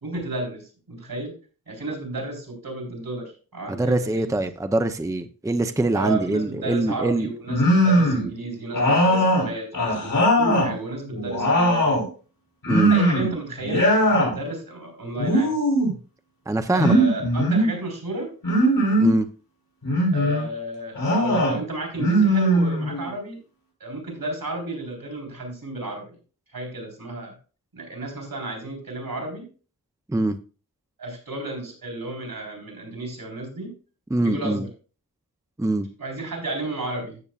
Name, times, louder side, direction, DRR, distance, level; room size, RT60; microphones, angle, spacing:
voice 1, 0.0-1.3 1.7-4.4 5.9-12.0 12.9-15.6 16.7-18.3 20.1-23.4 23.8-26.2 26.5-27.3 27.7-29.5 31.0-33.7 34.2-34.7 36.0-37.2, right 2 dB, 80° right, 2 dB, 4.1 m, -32 dB
voice 2, 3.7-7.3 12.7-12.9 16.5-17.0 19.0-19.3 30.1-30.4 34.1-34.6 35.6-35.9, right 2 dB, 10° right, 8 dB, 0.6 m, -23 dB
sound 1, 7.5-8.3 8.7-10.7 11.1-12.1 12.6-13.3 13.6-14.3 15.2-15.9 16.8-17.7 18.4-19.2 19.8-20.4 20.9-21.6 22.0-23.1, equal, 85° left, 5.1 m, -20 dB
14.0 x 7.0 x 2.4 m, 0.36 s
wide cardioid pair, 80°, 35 cm